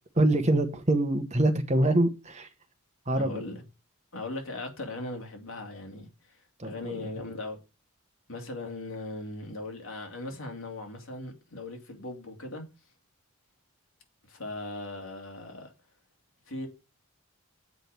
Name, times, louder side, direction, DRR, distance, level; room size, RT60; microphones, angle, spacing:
voice 1, 0.1-2.5 3.1-3.4 6.6-7.0, right 1 dB, 30° right, 1.1 m, -25 dB
voice 2, 3.1-3.6 4.1-6.1 6.6-7.6 8.3-12.6 14.3-15.7 16.5-16.7, left 2 dB, 65° left, 2.7 m, -38 dB
8.2 x 5.1 x 7.5 m
head